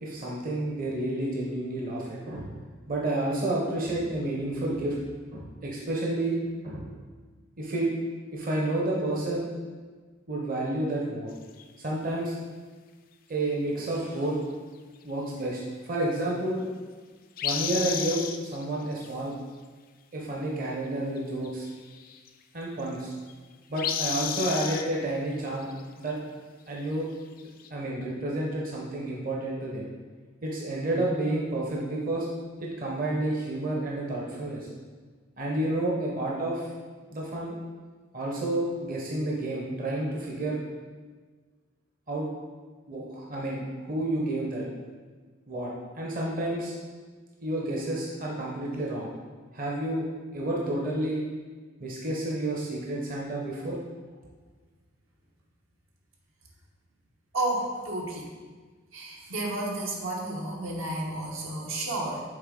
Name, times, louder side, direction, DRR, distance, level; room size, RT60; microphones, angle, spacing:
voice 1, 0.0-2.5 2.9-5.0 5.3-6.4 6.6-6.9 7.6-7.9 8.3-9.5 10.3-11.3 11.8-12.3 13.3-14.4 15.0-16.6 17.4-19.3 20.1-21.7 22.5-23.1 23.7-25.7 26.0-26.2 26.7-27.1 27.7-29.9 30.4-32.3 32.6-34.7 35.4-36.7 37.1-37.5 38.1-40.6 42.1-42.3 42.9-44.7 45.5-45.7 46.0-46.7 47.4-49.1 49.5-50.0 50.3-51.2 51.8-53.8, right 1 dB, 45° right, -3 dB, 0.9 m, -30 dB
sound 1, 11.3-11.6 17.4-18.7 18.9-19.1 21.2-21.3 21.4-22.3 22.8-23.3 23.8-24.9 25.5-25.8 26.1-26.2 27.4-27.7, left 8 dB, 45° left, 0.4 m, -32 dB
voice 2, 57.3-58.3 58.9-62.2, right 2 dB, 75° right, -2 dB, 1.1 m, -31 dB
6.5 x 4.1 x 3.8 m, 1.4 s
head